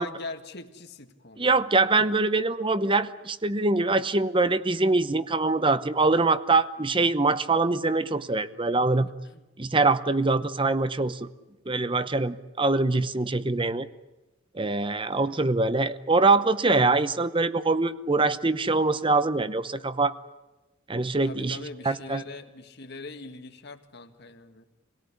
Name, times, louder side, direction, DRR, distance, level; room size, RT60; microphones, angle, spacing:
voice 1, 0.0-1.6 9.2-9.4 21.2-24.6, left 3 dB, 55° left, 6 dB, 2.0 m, -42 dB
voice 2, 1.4-9.1 9.6-11.3 11.7-13.9 14.5-20.1 20.9-21.6 21.8-22.2, right 3 dB, 25° right, 13 dB, 0.9 m, -24 dB
26.5 x 18.0 x 9.9 m, 1.1 s
head